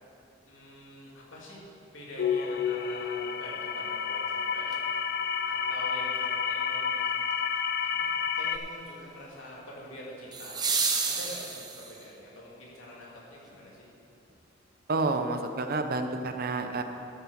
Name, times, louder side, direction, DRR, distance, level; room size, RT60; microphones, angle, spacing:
voice 1, 0.5-1.6 1.9-4.8 5.4-7.1 7.8-13.9, left 1 dB, 85° left, -5 dB, 2.7 m, -45 dB
sound 1, 2.2-8.6, left 6 dB, 55° left, 0.5 m, -30 dB
sound 2, 4.7-4.8 10.3-12.1 14.3-14.4, right 4 dB, 20° right, 0.9 m, -30 dB
voice 2, 14.9-16.8, right 3 dB, 50° right, 7 dB, 0.7 m, -29 dB
13.0 x 5.8 x 6.4 m, 2.8 s
head